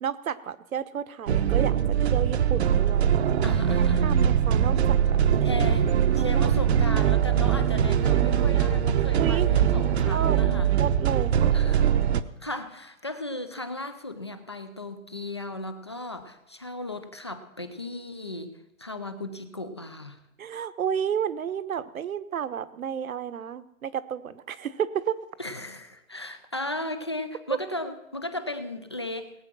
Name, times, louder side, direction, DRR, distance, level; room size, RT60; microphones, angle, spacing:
voice 1, 0.0-3.1 3.7-5.2 6.1-6.5 8.2-8.5 9.2-9.5 10.0-10.4 10.8-11.5 20.4-25.2, right 8 dB, 75° right, 14 dB, 1.1 m, -32 dB
sound 1, 1.3-12.2, right 9 dB, 50° right, 0.8 m, -22 dB
voice 2, 3.4-4.2 5.4-10.7 11.5-11.9 12.4-20.2 25.4-29.3, left 2 dB, 20° left, 10 dB, 0.4 m, -36 dB
19.0 x 8.8 x 6.0 m, 0.90 s
hypercardioid pair, 155°, 42 cm